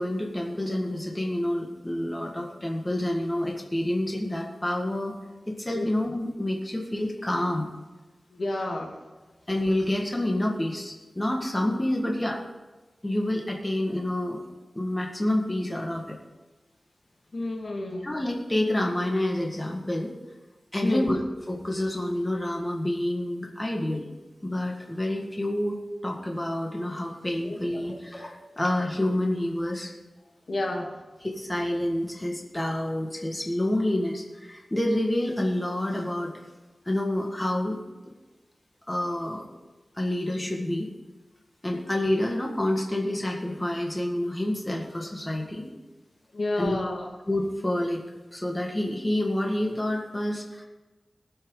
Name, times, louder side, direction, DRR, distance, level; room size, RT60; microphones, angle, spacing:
voice 1, 0.0-5.2 5.5-7.7 9.5-12.4 13.0-14.4 14.8-16.2 18.0-20.1 20.7-21.2 21.5-24.1 24.4-29.9 31.2-36.3 36.9-37.8 38.9-39.4 40.0-40.9 41.6-45.7 46.6-46.8 47.3-48.0 48.3-50.6, left 1 dB, 20° left, 0 dB, 1.8 m, -28 dB
voice 2, 8.4-8.9 17.3-18.1 20.8-21.1 27.4-27.8 30.5-30.9 46.3-47.1, left 2 dB, 65° left, 1 dB, 2.1 m, -30 dB
19.0 x 8.0 x 3.9 m, 1.2 s
wide cardioid pair, 90°, 0 cm